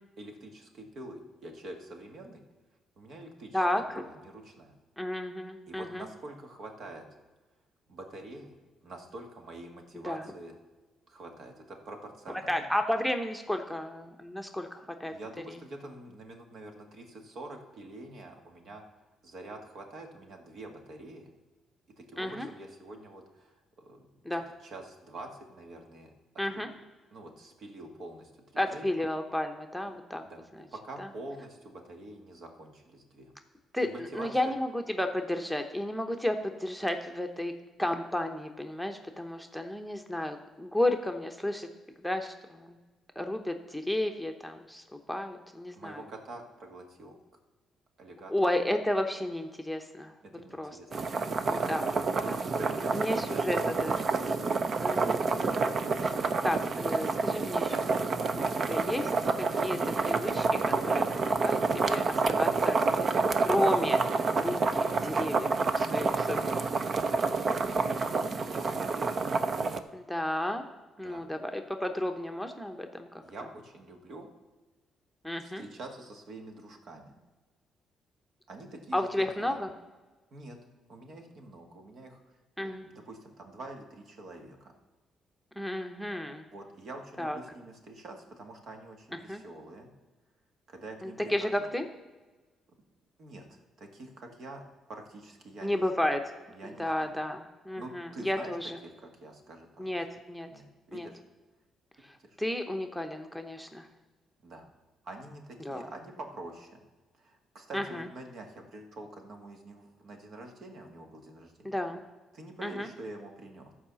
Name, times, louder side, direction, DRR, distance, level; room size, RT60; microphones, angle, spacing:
voice 1, 0.2-2.4 3.0-4.8 5.7-7.1 7.9-10.6 11.1-12.6 15.1-18.8 19.2-21.3 22.0-24.1 24.3-26.1 27.1-28.9 30.2-30.4 30.7-33.3 33.8-34.5 45.8-47.2 48.0-48.3 50.2-51.8 52.2-54.0 58.2-58.5 68.5-69.3 71.0-71.3 73.2-74.3 75.4-77.1 78.5-79.6 80.3-80.6 80.9-82.2 82.6-84.7 86.3-89.9 90.7-91.7 93.2-96.1 96.5-97.2 97.8-100.0 100.5-101.2 102.2-102.4 104.4-104.7 105.0-106.8 107.2-111.7 112.3-113.7, right 2 dB, 65° right, 3 dB, 1.9 m, -46 dB
voice 2, 3.5-4.0 5.0-6.0 10.0-10.2 12.5-15.1 22.2-22.5 24.3-24.5 26.4-26.7 28.6-30.2 33.7-33.9 34.1-37.5 37.8-41.7 42.0-42.7 43.2-44.8 45.1-46.0 48.3-50.1 50.6-50.8 51.5-51.8 52.3-52.4 52.9-54.0 54.2-54.4 54.8-55.8 56.0-56.1 56.4-57.9 58.7-59.1 59.4-59.8 60.0-61.6 61.9-62.8 63.1-64.0 64.4-65.5 65.7-66.5 69.9-70.6 71.0-73.1 75.2-75.6 78.9-79.7 82.6-82.8 85.6-86.4 87.2-87.4 89.3-89.4 91.0-91.8 95.6-96.2 96.8-98.8 99.8-100.5 100.9-101.1 102.4-103.9 105.6-105.9 107.7-108.0 111.6-112.0 112.6-112.9, left 1 dB, ahead, 4 dB, 0.9 m, -32 dB
sound 1, 50.9-69.8, right 4 dB, 45° right, 0.7 m, -28 dB
13.0 x 4.9 x 7.0 m, 1.3 s
cardioid pair, 90°, 0 cm